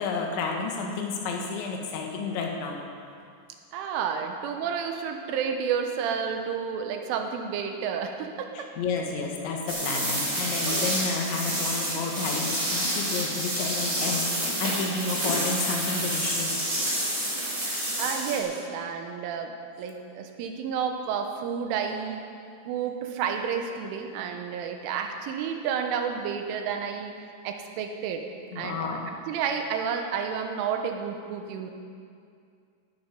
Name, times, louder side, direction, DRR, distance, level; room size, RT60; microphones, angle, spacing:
voice 1, 0.0-2.8 8.6-16.7 28.5-29.1, left 4 dB, 75° left, 1 dB, 3.8 m, -31 dB
voice 2, 3.7-8.7 17.6-22.2 22.7-27.2 27.5-28.3 28.6-28.9 29.3-31.7, right 7 dB, 90° right, 4 dB, 3.6 m, -31 dB
sound 1, 9.7-18.4, right 1 dB, 15° right, 4.5 m, -28 dB
17.5 x 12.0 x 5.3 m, 2.3 s
omnidirectional pair, 5.5 m